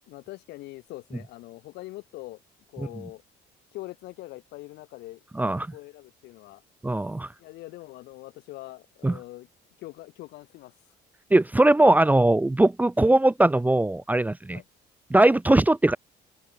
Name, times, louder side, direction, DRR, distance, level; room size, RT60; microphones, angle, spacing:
voice 1, 0.1-2.4 2.7-3.2 3.7-5.2 5.7-6.6 7.4-9.5 9.8-10.7 14.5-14.6, left 18 dB, 85° left, 7.4 m, -43 dB
voice 2, 6.8-7.3 9.0-9.1 11.3-14.6 15.1-16.0, right 1 dB, 10° right, 0.7 m, -20 dB
open air
cardioid pair, 110°, 17 cm